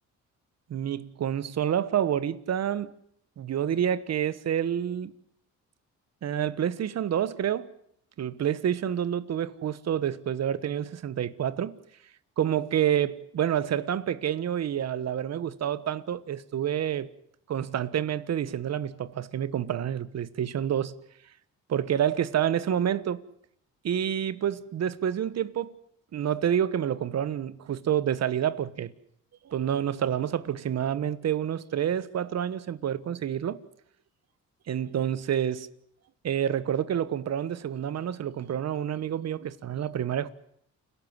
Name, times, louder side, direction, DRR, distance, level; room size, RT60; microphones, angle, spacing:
voice 1, 0.7-2.9 3.4-5.1 6.2-7.7 8.2-11.8 12.4-17.1 17.5-20.9 21.7-23.2 23.8-25.7 26.1-28.9 29.4-33.6 34.7-35.7 36.2-40.3, right 9 dB, 60° right, 1.3 m, -28 dB
29.5 x 13.0 x 9.6 m
cardioid pair, 90°, 30 cm